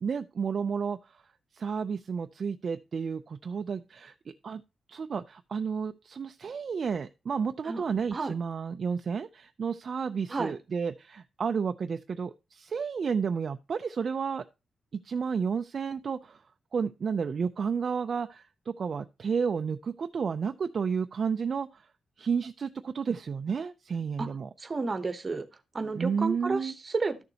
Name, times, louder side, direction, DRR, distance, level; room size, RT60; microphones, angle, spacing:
voice 1, 0.0-1.2 1.5-4.1 4.4-4.6 4.9-14.4 15.0-16.4 16.7-21.9 22.2-24.5 26.0-26.7, right 6 dB, 45° right, 0.4 m, -31 dB
voice 2, 24.6-25.5 25.7-27.2, right 3 dB, 30° right, 0.9 m, -31 dB
12.5 x 6.8 x 2.8 m
wide cardioid pair, 160°, 0 cm